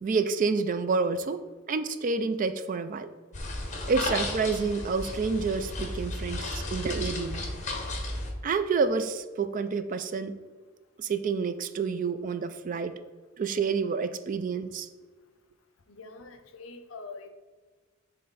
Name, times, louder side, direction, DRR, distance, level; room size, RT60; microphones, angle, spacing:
voice 1, 0.0-3.1 3.9-7.4 8.4-10.3 11.0-13.0 13.4-14.9, right 4 dB, 40° right, 11 dB, 0.3 m, -29 dB
sound 1, 3.3-8.3, left 2 dB, 35° left, 1.0 m, -34 dB
voice 2, 15.9-17.3, left 3 dB, 70° left, 7 dB, 0.6 m, -44 dB
7.5 x 3.7 x 4.0 m, 1.4 s
head